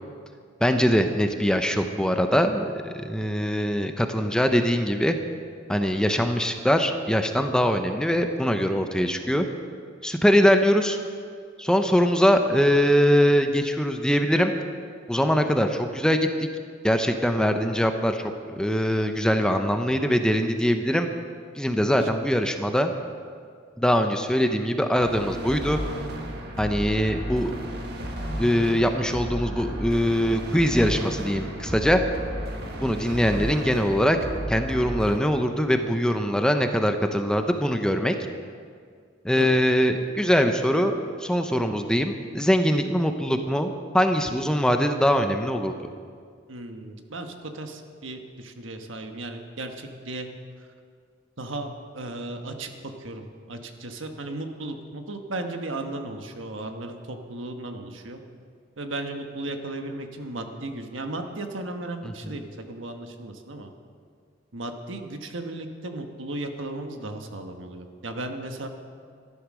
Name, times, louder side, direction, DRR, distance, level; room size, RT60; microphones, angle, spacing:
voice 1, 0.6-5.2 5.7-9.5 10.0-11.0 11.6-14.5 15.1-16.3 16.8-21.1 21.6-22.9 23.8-25.8 26.6-27.5 28.4-32.0 32.8-34.2 34.5-38.2 39.2-40.9 41.2-45.7 62.0-62.3, equal, 5° left, 6 dB, 0.7 m, -22 dB
sound 1, 25.0-35.2, equal, 55° right, 1.7 m, -33 dB
voice 2, 46.5-50.3 51.4-58.2 58.8-63.7 64.5-68.7, right 2 dB, 80° right, 5 dB, 1.3 m, -35 dB
14.0 x 11.5 x 6.2 m, 2.1 s
head